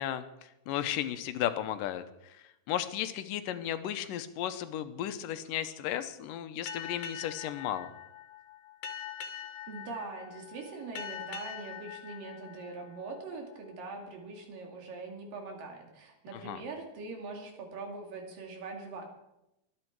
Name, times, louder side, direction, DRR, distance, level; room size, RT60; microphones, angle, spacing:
voice 1, 0.0-2.4 2.7-7.9 16.4-16.6, left 11 dB, 85° left, 11 dB, 2.4 m, -34 dB
Boat Water vehicle, 6.7-13.7, left 8 dB, 70° left, 2.5 m, -44 dB
voice 2, 9.7-19.1, right 3 dB, 85° right, 2 dB, 4.1 m, -42 dB
24.0 x 8.9 x 4.7 m, 0.88 s
omnidirectional pair, 3.8 m